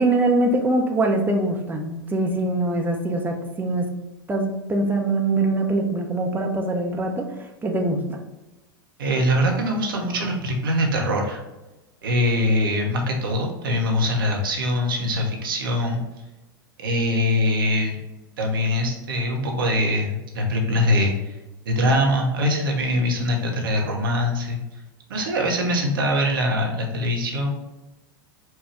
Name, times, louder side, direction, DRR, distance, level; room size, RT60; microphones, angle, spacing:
voice 1, 0.0-3.9 4.3-7.2 7.6-8.2, right 2 dB, 15° right, 2 dB, 0.7 m, -23 dB
voice 2, 9.0-11.4 12.0-16.0 16.8-18.0 18.4-21.4 21.7-24.6 25.1-27.5, left 1 dB, 70° right, 1 dB, 1.0 m, -23 dB
4.5 x 2.3 x 4.6 m, 1.0 s
figure-of-eight pair, 90°, 12 cm